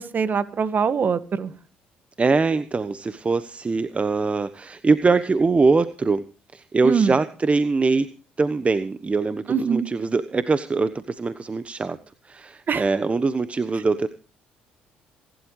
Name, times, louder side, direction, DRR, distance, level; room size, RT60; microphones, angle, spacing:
voice 1, 0.0-1.5 6.8-7.2 9.5-9.9 12.7-12.9, right 6 dB, 45° right, 13 dB, 1.9 m, -23 dB
voice 2, 2.2-6.2 6.5-8.1 8.4-12.0 12.2-14.1, right 4 dB, 30° right, 12 dB, 1.1 m, -22 dB
28.0 x 12.0 x 3.2 m, 0.36 s
hypercardioid pair, 50°, 4 cm